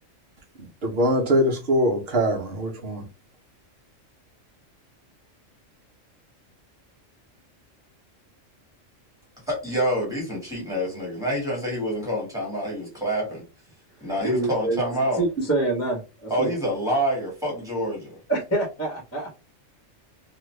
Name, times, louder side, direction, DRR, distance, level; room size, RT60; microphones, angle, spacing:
voice 1, 0.8-3.0, equal, 55° right, 1.0 m, -22 dB
voice 2, 9.5-13.4 14.0-15.2 16.3-18.2, equal, 5° right, 1.5 m, -27 dB
voice 3, 14.2-14.8 15.2-16.5 18.3-19.4, right 2 dB, 15° left, 0.9 m, -26 dB
2.7 x 2.4 x 3.2 m
omnidirectional pair, 1.3 m